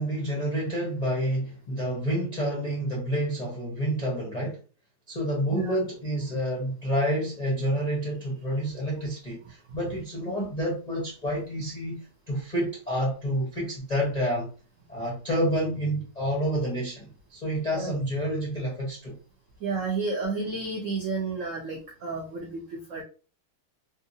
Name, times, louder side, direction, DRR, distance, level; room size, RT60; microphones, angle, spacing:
voice 1, 0.0-4.6 5.1-14.5 14.9-19.2, equal, 45° left, 0.5 m, -29 dB
voice 2, 19.6-23.0, right 4 dB, 80° right, 0.7 m, -31 dB
3.6 x 2.6 x 2.7 m
omnidirectional pair, 2.3 m